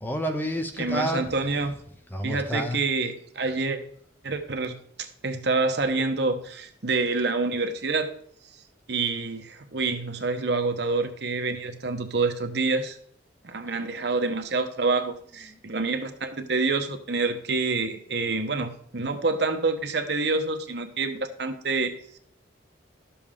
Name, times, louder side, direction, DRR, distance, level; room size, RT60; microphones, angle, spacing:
voice 1, 0.0-1.3 2.1-2.8, equal, 10° left, 6 dB, 0.7 m, -29 dB
voice 2, 0.8-1.8 2.2-3.8 4.2-8.1 8.9-13.0 13.4-22.2, right 3 dB, 60° right, 6 dB, 1.0 m, -27 dB
12.0 x 7.1 x 3.6 m, 0.63 s
head